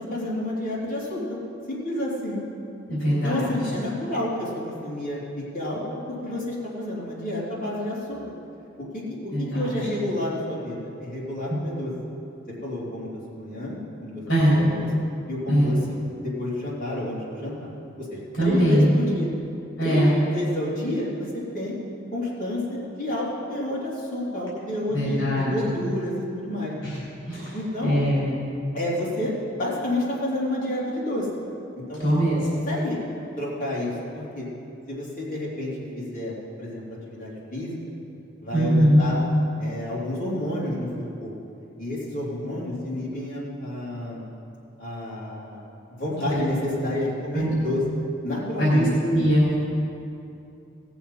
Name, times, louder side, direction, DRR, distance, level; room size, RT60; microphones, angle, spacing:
voice 1, 0.1-1.4 1.7-2.4 3.1-5.8 6.2-8.2 8.8-11.9 12.6-14.2 14.5-14.9 15.3-17.7 18.0-19.3 19.8-21.1 21.5-21.8 22.1-26.7 27.5-28.0 28.7-31.3 31.7-32.1 32.4-33.0 33.4-34.5 34.9-36.3 36.6-37.8 38.4-39.2 39.6-41.3 41.8-44.2 44.8-45.6 46.0-47.8 48.2-48.9, left 1 dB, 45° left, -7 dB, 3.4 m, -30 dB
voice 2, 2.9-3.5 9.3-9.7 14.3-14.6 15.5-15.7 18.4-18.9 19.8-20.2 24.9-25.5 26.8-26.9 27.3-27.5 27.8-28.3 32.0-32.4 38.5-39.0 46.3-46.4 47.3-47.5 48.6-49.5, equal, 70° left, -8 dB, 3.7 m, -21 dB
18.0 x 7.1 x 5.8 m, 2.6 s
head